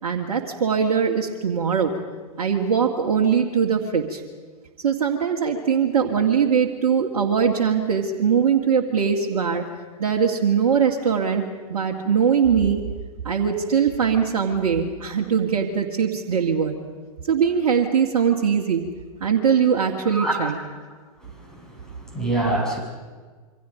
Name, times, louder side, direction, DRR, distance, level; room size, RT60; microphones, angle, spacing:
voice 1, 0.0-1.9 2.4-4.2 4.8-9.6 10.0-11.4 11.7-12.8 13.2-16.8 17.3-18.8 19.2-20.5, right 7 dB, 65° right, -1 dB, 2.3 m, -21 dB
voice 2, 21.2-22.8, right 2 dB, 5° left, -2 dB, 7.4 m, -26 dB
27.5 x 24.5 x 5.2 m, 1.5 s
hypercardioid pair, 105°, 19 cm